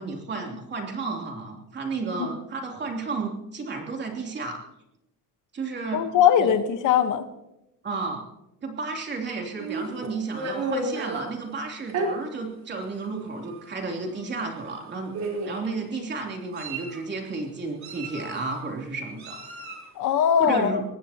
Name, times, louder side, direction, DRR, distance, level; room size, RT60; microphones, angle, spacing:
voice 1, 0.0-4.6 5.5-6.1 6.4-6.5 7.8-8.2 8.6-15.1 15.4-19.4 20.4-20.8, right 3 dB, 30° right, 1 dB, 3.2 m, -32 dB
voice 2, 5.9-7.2 20.0-20.8, left 8 dB, 65° left, 9 dB, 1.3 m, -21 dB
Meow, 9.6-11.2 11.9-12.1 12.9-13.1 13.4-13.6 14.7-14.8 15.1-15.7 16.3-17.0 17.8-18.6 19.2-19.9, right 2 dB, 55° right, 3.9 m, -32 dB
23.0 x 19.0 x 3.0 m, 0.90 s
cardioid pair, 160°, 34 cm